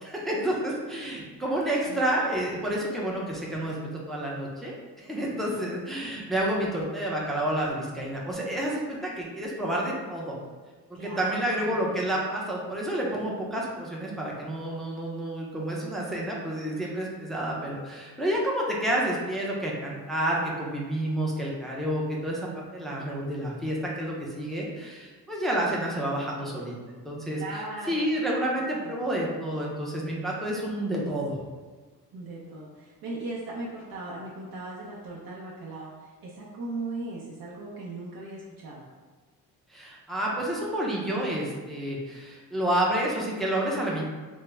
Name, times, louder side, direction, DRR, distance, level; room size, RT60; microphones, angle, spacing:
voice 1, 0.0-10.4 10.9-27.4 27.9-31.4 39.7-44.1, right 1 dB, ahead, -4 dB, 0.5 m, -29 dB
voice 2, 10.9-12.2 27.3-28.0 28.3-28.4 28.8-28.9 32.1-38.8, right 2 dB, 65° right, -5 dB, 0.7 m, -38 dB
3.5 x 2.0 x 3.2 m, 1.4 s
cardioid pair, 130°, 38 cm